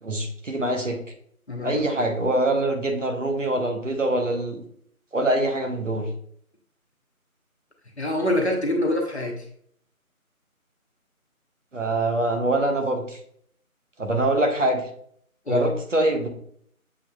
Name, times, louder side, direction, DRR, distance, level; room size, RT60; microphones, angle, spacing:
voice 1, 0.0-1.0 1.6-4.6 5.1-6.1 11.7-13.2 14.0-14.8 15.5-16.3, right 1 dB, 55° right, 3 dB, 1.0 m, -24 dB
voice 2, 1.5-2.0 8.0-9.4 15.5-15.7, left 1 dB, 50° left, 2 dB, 0.8 m, -25 dB
7.0 x 3.1 x 2.3 m, 0.64 s
figure-of-eight pair, 170°, 44 cm